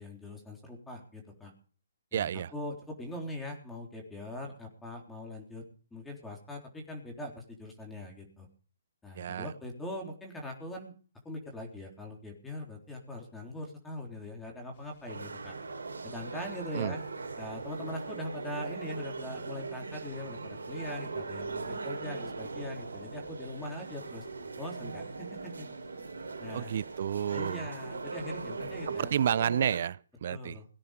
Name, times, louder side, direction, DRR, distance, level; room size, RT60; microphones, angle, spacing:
voice 1, 0.0-1.5 2.1-5.6 5.9-8.5 9.0-10.9 11.2-15.5 16.0-17.0 17.4-24.2 24.6-25.7 26.4-26.7 27.3-29.1 30.3-30.7, left 1 dB, 5° left, 3.8 m, -41 dB
voice 2, 2.1-2.5 9.2-9.5 16.7-16.9 26.5-27.7 28.9-30.6, right 9 dB, 55° right, 0.6 m, -31 dB
sound 1, 14.7-29.2, left 4 dB, 45° left, 6.7 m, -59 dB
sound 2, 15.1-29.8, right 4 dB, 90° right, 3.4 m, -40 dB
18.0 x 9.9 x 5.1 m
hypercardioid pair, 145°, 0 cm